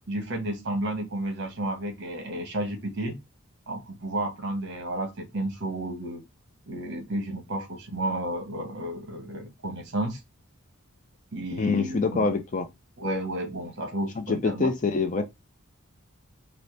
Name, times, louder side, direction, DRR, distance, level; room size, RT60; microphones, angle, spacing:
voice 1, 0.1-3.2 3.7-6.2 6.7-10.2 11.3-12.3 13.0-14.7, right 1 dB, 50° right, 1.1 m, -32 dB
voice 2, 11.6-12.7 14.2-15.3, left 4 dB, 35° left, 0.4 m, -25 dB
4.0 x 2.0 x 3.2 m
head